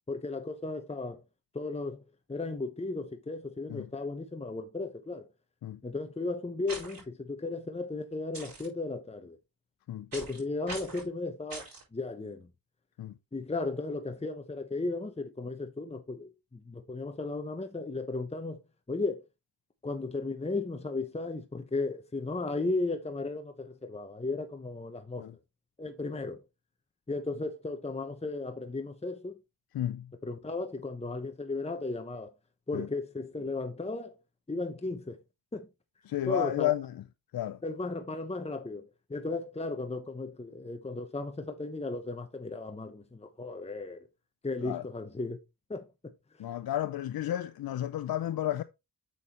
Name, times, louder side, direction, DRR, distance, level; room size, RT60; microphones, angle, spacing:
voice 1, 0.1-1.2 1.5-2.0 2.3-5.3 5.8-9.4 10.1-12.5 13.3-18.6 18.9-19.2 19.8-25.3 25.8-26.4 27.1-29.3 30.2-32.3 32.7-34.2 34.5-35.2 35.5-35.7 36.3-36.7 37.6-44.0 44.4-45.4 45.7-45.9, left 3 dB, 15° left, 0.9 m, -35 dB
sound 1, 6.7-7.0 8.3-8.7 10.1-10.4 10.7-11.1 11.5-11.8, right 3 dB, 65° right, 4.7 m, -41 dB
voice 2, 29.7-30.1 32.7-32.9 36.1-37.0 37.3-37.6 44.6-44.8 46.4-48.6, left 12 dB, 75° left, 0.6 m, -32 dB
7.0 x 6.4 x 3.0 m
cardioid pair, 65°, 36 cm